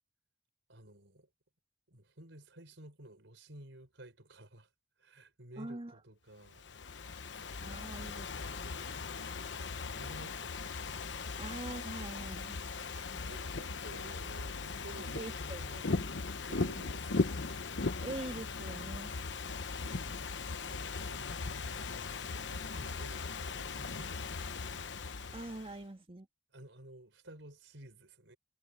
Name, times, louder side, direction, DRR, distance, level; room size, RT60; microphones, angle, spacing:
voice 1, 0.7-1.3 1.9-4.7 5.0-6.6 8.6-10.5 11.0-11.2 12.7-15.8 16.2-17.4 20.5-21.3 21.6-22.1 22.5-24.3 26.5-28.4, right 1 dB, 90° right, 4.4 m, -54 dB
voice 2, 5.6-6.0 7.6-8.6 11.4-12.6 15.1-16.1 18.0-19.1 25.3-26.3, right 2 dB, 30° right, 1.7 m, -44 dB
Ocean / Fireworks, 6.5-25.8, left 4 dB, 70° left, 1.0 m, -38 dB
head